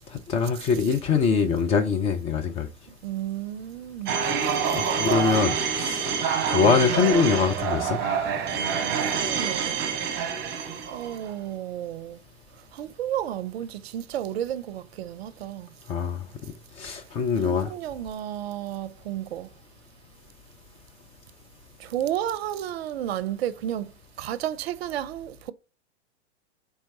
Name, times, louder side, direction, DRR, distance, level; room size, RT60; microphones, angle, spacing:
voice 1, 0.1-2.7 4.7-6.2 6.5-8.0 15.9-16.2 16.8-17.7, left 5 dB, 20° left, 0.3 m, -23 dB
voice 2, 3.0-4.3 4.8-4.9 8.9-10.0 10.9-12.2 12.7-15.7 17.4-19.5 21.8-23.9 24.2-25.5, right 11 dB, 60° right, 0.5 m, -32 dB
sound 1, 4.1-11.3, right 6 dB, 30° right, 0.9 m, -27 dB
4.4 x 3.3 x 2.7 m
figure-of-eight pair, 95°, 35 cm